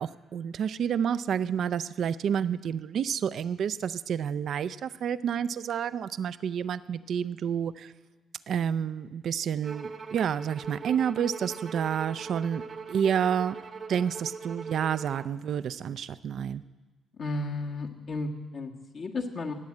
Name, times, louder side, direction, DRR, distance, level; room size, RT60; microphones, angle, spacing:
voice 1, 0.0-7.9 8.5-12.6 12.9-13.6 13.9-16.6, right 8 dB, 65° right, 15 dB, 0.5 m, -29 dB
Bowed string instrument, 9.6-15.4, right 5 dB, 45° right, 1.0 m, -41 dB
voice 2, 17.2-19.5, left 2 dB, 55° left, -1 dB, 1.5 m, -33 dB
18.5 x 7.8 x 8.4 m, 1.3 s
cardioid pair, 90°, 0 cm